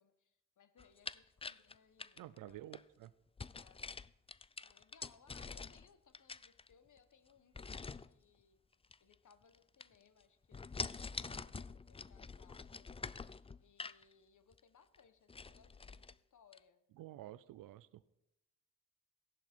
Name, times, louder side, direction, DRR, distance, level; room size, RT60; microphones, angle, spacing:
voice 1, 0.0-2.6 3.5-3.8 4.3-8.6 9.0-16.8, left 6 dB, 65° left, 10 dB, 1.3 m, -68 dB
sound 1, 0.8-2.8 3.4-5.9 6.1-7.0 7.5-8.1 8.8-9.6 9.8-10.2 10.5-14.0 14.5-14.6 14.9-15.0 15.3-16.1 16.5-16.6, left 4 dB, 20° left, 0.4 m, -46 dB
voice 2, 2.2-3.1 17.0-18.0, right 14 dB, 90° right, 16 dB, 0.5 m, -51 dB
15.5 x 11.0 x 4.5 m, 0.89 s
supercardioid pair, 50°, 32 cm